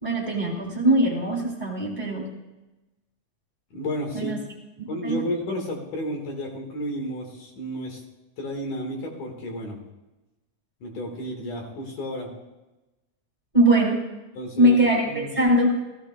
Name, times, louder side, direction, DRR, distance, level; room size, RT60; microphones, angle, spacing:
voice 1, 0.0-2.3 4.1-4.4 4.8-5.2 13.5-14.0 14.6-15.8, right 1 dB, 15° right, -4 dB, 1.6 m, -21 dB
voice 2, 3.7-4.3 4.9-8.0 8.4-9.8 10.8-12.3 14.3-14.8 15.1-15.3, equal, 80° left, 1 dB, 3.1 m, -32 dB
17.5 x 14.5 x 2.2 m, 1.1 s
omnidirectional pair, 3.5 m